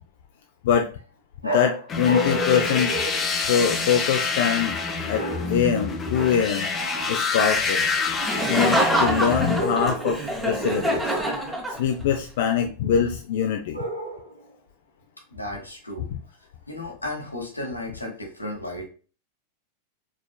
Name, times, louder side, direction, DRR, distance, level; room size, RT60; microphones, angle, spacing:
sound 1, 1.4-3.9 5.1-5.7 6.1-6.6 9.5-10.2 13.7-14.5, left 1 dB, 90° right, 1.1 m, -31 dB
voice 1, 1.5-2.9 3.4-4.8 5.1-5.2 5.5-6.7 7.1-7.8 8.5-11.1 11.8-13.8 16.1-16.2, left 8 dB, 55° left, 4 dB, 0.4 m, -23 dB
sound 2, 1.9-9.6, left 4 dB, 25° left, 0.7 m, -27 dB
Laughter, 8.2-12.1, right 1 dB, 5° right, 1.1 m, -25 dB
voice 2, 15.3-16.1 16.7-18.8, left 1 dB, 85° left, 0 dB, 1.3 m, -34 dB
4.8 x 3.6 x 2.3 m, 0.37 s
figure-of-eight pair, 90°, 0 cm